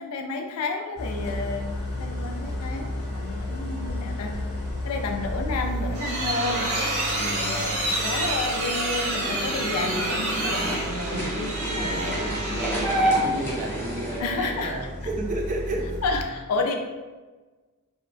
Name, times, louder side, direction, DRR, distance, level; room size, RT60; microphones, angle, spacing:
voice 1, 0.0-4.3 4.8-6.7 7.3-13.3 14.2-14.7 16.0-16.8, left 3 dB, 85° left, 4 dB, 0.4 m, -31 dB
Idling, 1.0-16.2, equal, 45° left, 0.6 m, -34 dB
sound 1, 5.6-13.1, right 1 dB, 70° right, 0.6 m, -28 dB
voice 2, 7.1-7.5 8.0-8.3 11.1-16.0, right 2 dB, 35° right, 1 dB, 0.3 m, -33 dB
sound 2, 9.2-14.2, right 1 dB, 15° left, 0.9 m, -29 dB
2.8 x 2.1 x 2.5 m, 1.3 s
head